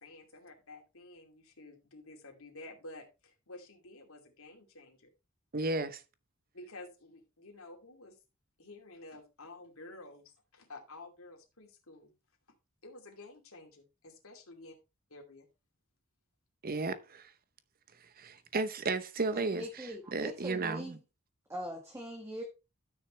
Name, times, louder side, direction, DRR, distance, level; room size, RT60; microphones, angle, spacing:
voice 1, 0.0-5.1 6.5-8.2 8.6-12.1 12.8-14.7 15.1-15.5, left 2 dB, 70° left, 2.7 m, -51 dB
voice 2, 5.5-6.0 16.6-17.3 18.0-21.0, right 3 dB, 45° right, 0.8 m, -34 dB
voice 3, 19.3-21.0 21.5-22.4, equal, 15° right, 1.4 m, -41 dB
12.5 x 6.4 x 3.2 m
head